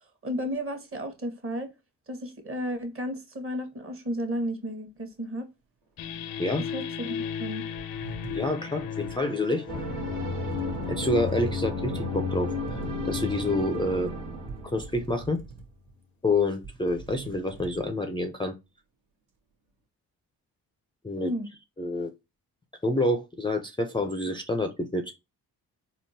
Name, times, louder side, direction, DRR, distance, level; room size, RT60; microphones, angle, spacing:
voice 1, 0.2-1.7 2.1-5.5 6.7-7.6 21.2-21.5, equal, 35° right, 1.0 m, -33 dB
sound 1, 6.0-15.3, left 8 dB, 60° left, 0.5 m, -34 dB
sound 2, 7.8-9.2 10.0-10.1 10.5-11.7 12.3-14.0 14.5-15.9 16.3-16.4 16.6-17.8, right 4 dB, 65° right, 1.1 m, -44 dB
voice 2, 8.3-9.7 10.9-14.1 14.6-15.4 16.2-18.5 21.0-21.3 21.8-22.1 22.8-25.1, left 2 dB, 15° left, 0.4 m, -28 dB
sound 3, 9.7-15.2, right 4 dB, 90° right, 1.2 m, -37 dB
3.6 x 2.2 x 2.6 m
supercardioid pair, 55°, 39 cm